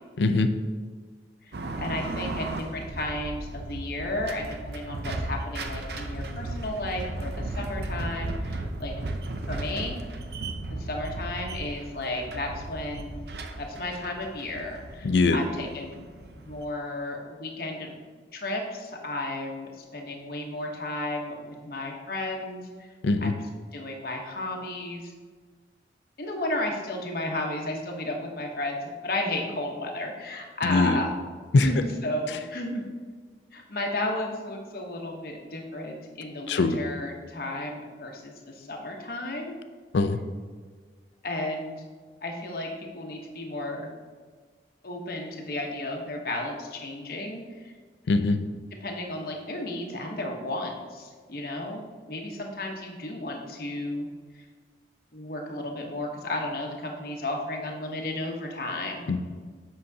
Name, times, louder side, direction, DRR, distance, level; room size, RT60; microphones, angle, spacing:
voice 1, 0.2-0.5 15.0-15.4 23.0-23.3 30.6-31.0 31.5-31.7 36.5-36.8 39.9-40.2 48.1-48.4 59.1-59.2, left 3 dB, 80° left, 9 dB, 0.4 m, -21 dB
metal gates squeaking in the wind, 1.5-16.6, right 2 dB, 65° right, 0.6 m, -35 dB
voice 2, 1.8-8.9 9.5-10.0 10.7-13.2 13.6-16.0 16.3-18.0 18.3-22.9 23.2-23.4 23.7-25.1 26.2-31.1 31.6-32.8 33.5-39.6 41.2-41.8 42.2-43.9 44.8-47.7 48.8-54.1 54.3-54.4 55.1-59.1, left 1 dB, 55° left, 1 dB, 1.0 m, -33 dB
7.7 x 5.6 x 2.8 m, 1.5 s
head